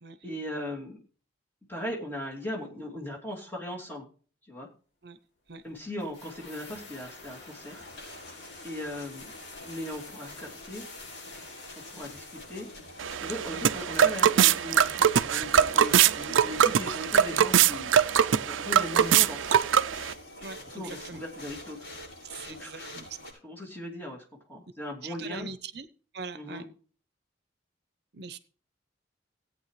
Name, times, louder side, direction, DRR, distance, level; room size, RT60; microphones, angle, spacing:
voice 1, 0.2-1.0 1.7-4.1 4.5-4.7 5.6-7.9 8.6-9.3 9.6-10.9 11.9-12.7 13.2-18.0 18.4-19.5 20.7-21.9 22.5-22.9 23.4-25.5 26.3-26.7, left 1 dB, 10° left, -2 dB, 2.7 m, -38 dB
sound 1, 6.0-13.3 13.5-13.6, left 3 dB, 65° left, 3.0 m, -48 dB
sound 2, 6.7-23.3, left 1 dB, 85° left, 6.6 m, -47 dB
sound 3, 13.0-20.1, right 8 dB, 85° right, 0.5 m, -23 dB
voice 2, 20.4-21.2 22.2-23.3 25.0-25.9 26.1-26.6 28.1-28.4, right 5 dB, 60° right, 12 dB, 0.8 m, -42 dB
17.0 x 8.8 x 3.2 m, 0.40 s
head